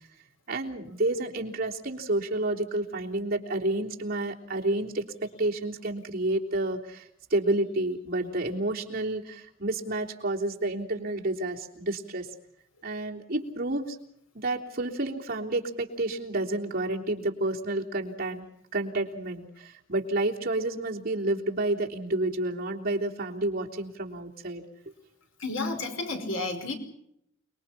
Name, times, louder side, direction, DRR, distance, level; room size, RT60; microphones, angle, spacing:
voice 1, 0.5-5.0 5.4-12.3 12.8-14.0 14.3-18.4 18.7-24.6, right 2 dB, 50° right, -1 dB, 3.4 m, -30 dB
voice 2, 25.4-26.7, left 2 dB, 90° left, 6 dB, 5.2 m, -31 dB
29.0 x 21.5 x 5.8 m, 0.74 s
head